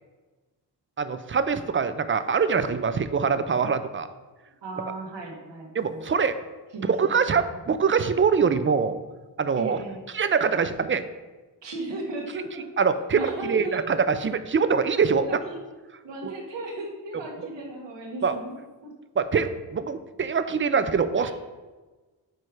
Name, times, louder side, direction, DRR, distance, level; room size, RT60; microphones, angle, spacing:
voice 1, 1.0-4.1 5.7-6.4 6.9-9.0 9.4-9.8 10.1-11.0 12.8-15.2 16.2-16.3 18.2-18.4 19.2-21.3, right 5 dB, 30° right, 11 dB, 0.4 m, -24 dB
voice 2, 4.6-6.0 6.7-6.9 7.3-7.6 9.5-10.0 11.6-12.6 13.1-13.9 15.1-15.6 16.0-18.5 18.8-18.9 21.2-21.3, right 2 dB, 85° right, -1 dB, 1.6 m, -36 dB
8.7 x 3.2 x 4.8 m, 1.3 s
wide cardioid pair, 105°, 42 cm